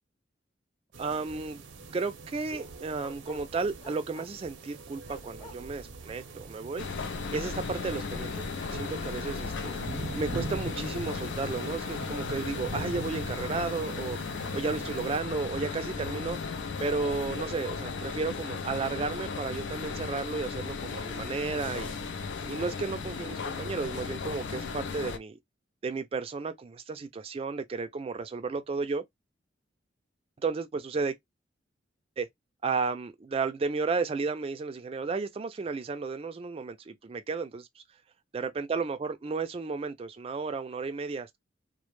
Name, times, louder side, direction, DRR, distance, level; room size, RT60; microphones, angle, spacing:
sound 1, 0.9-15.2, right 3 dB, 85° right, 0.5 m, -43 dB
voice 1, 1.0-1.6 1.9-6.9 7.3-9.7 10.1-14.2 14.5-16.4 16.8-21.9 22.5-25.4 25.8-29.0 30.4-31.1 32.2-32.3 32.6-37.8 38.3-41.4, right 4 dB, 30° right, 0.3 m, -33 dB
Bark, 3.0-4.4 5.1-5.6, left 1 dB, 20° left, 0.8 m, -47 dB
sound 2, 6.8-25.2, left 5 dB, 75° left, 0.4 m, -36 dB
2.1 x 2.0 x 3.0 m
head